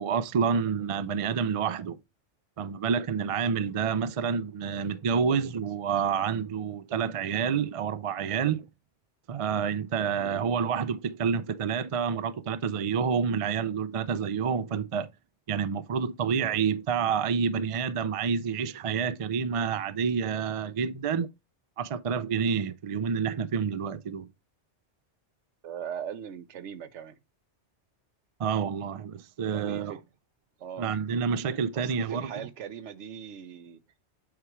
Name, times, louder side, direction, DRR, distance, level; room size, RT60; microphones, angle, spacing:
voice 1, 0.0-2.0 2.6-8.7 9.3-15.1 15.5-21.3 21.8-24.3 28.4-29.9 30.8-32.5, right 6 dB, 50° right, 0.4 m, -28 dB
voice 2, 10.2-10.5 17.2-17.5 25.6-27.2 29.5-30.0 30.6-30.9 31.7-33.8, right 8 dB, 80° right, 1.1 m, -40 dB
8.1 x 4.8 x 3.1 m
omnidirectional pair, 1.2 m